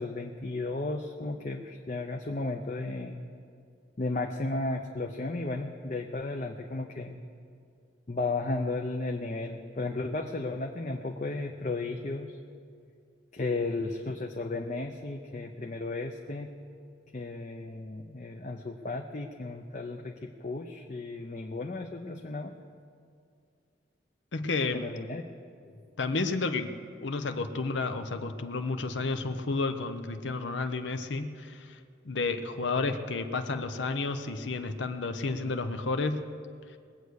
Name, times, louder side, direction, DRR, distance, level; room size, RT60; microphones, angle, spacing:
voice 1, 0.0-3.2 4.0-7.2 8.1-12.3 13.3-16.5 17.1-22.5 24.7-25.2 25.6-25.8, left 2 dB, 40° left, 3 dB, 0.6 m, -34 dB
voice 2, 24.3-24.9 26.0-26.7 27.0-31.8 32.0-36.2, left 3 dB, 85° left, 8 dB, 0.8 m, -31 dB
20.5 x 8.2 x 6.4 m, 2.3 s
head